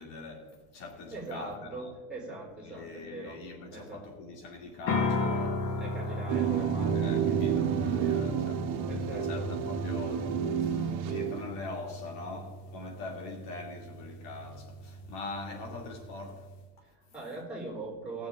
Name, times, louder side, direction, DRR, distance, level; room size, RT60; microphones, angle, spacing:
voice 1, 0.0-1.9 2.6-6.5 6.9-8.7 9.0-16.5, left 3 dB, 80° left, 2.6 m, -43 dB
voice 2, 1.1-3.4 3.7-4.1 5.8-7.4 8.9-9.5 16.8-18.3, right 3 dB, ahead, 3.9 m, -42 dB
sound 1, 4.9-16.6, left 2 dB, 65° left, 1.8 m, -37 dB
sound 2, 6.3-11.5, right 7 dB, 55° right, 1.5 m, -30 dB
20.5 x 7.0 x 3.8 m
cardioid pair, 145°, 36 cm